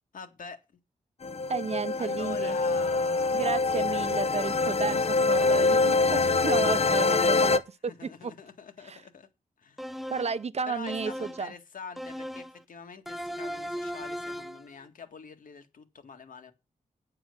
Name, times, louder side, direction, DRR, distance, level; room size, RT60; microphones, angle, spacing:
voice 1, 0.1-0.6 2.0-3.5 7.1-7.6 7.9-9.3 9.6-9.9 10.7-16.5, left 6 dB, 80° left, 1.9 m, -44 dB
sound 1, 1.2-7.6, left 3 dB, 50° left, 0.9 m, -25 dB
voice 2, 1.5-2.6 3.3-7.9 8.2-8.3 8.9-9.0 10.1-11.1 11.4-11.5, right 5 dB, 50° right, 0.7 m, -32 dB
sound 2, 9.8-10.4 10.9-11.5 12.0-12.6 13.1-14.7, equal, ahead, 0.6 m, -37 dB
9.2 x 7.7 x 6.5 m
wide cardioid pair, 90°, 14 cm